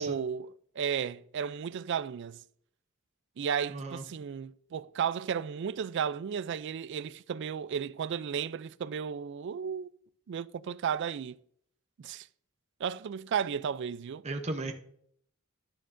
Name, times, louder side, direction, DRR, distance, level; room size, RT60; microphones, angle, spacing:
voice 1, 0.0-2.4 3.4-9.9 10.3-11.4 12.0-12.3 12.8-14.2, right 7 dB, 55° right, 0.3 m, -34 dB
voice 2, 3.7-4.0 14.2-14.7, right 2 dB, 30° right, 0.7 m, -35 dB
12.0 x 10.0 x 2.6 m
head